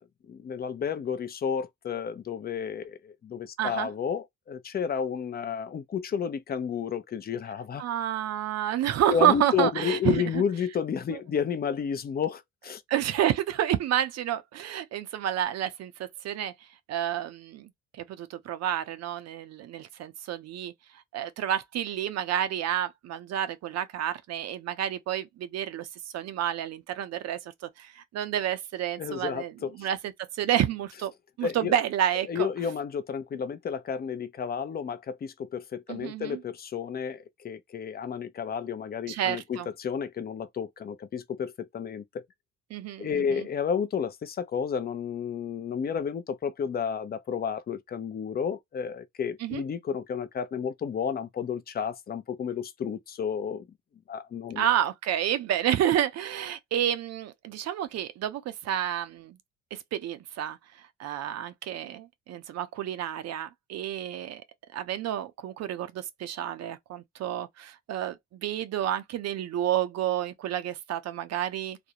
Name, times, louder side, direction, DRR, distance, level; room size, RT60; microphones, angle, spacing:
voice 1, 0.3-7.8 9.1-12.8 29.0-29.7 31.4-31.7 32.3-42.2 43.0-53.7 54.1-54.7, left 7 dB, 30° left, 0.5 m, -31 dB
voice 2, 3.6-3.9 7.8-10.2 11.1-11.2 12.9-16.5 16.9-20.7 21.1-27.5 27.8-29.5 29.8-30.0 30.3-31.1 31.4-32.5 35.9-36.4 39.1-39.7 42.7-43.5 49.4-49.6 54.6-59.4 59.7-64.4 64.7-71.8, right 11 dB, 60° right, 0.5 m, -29 dB
2.4 x 2.0 x 2.7 m
supercardioid pair, 75°, 30 cm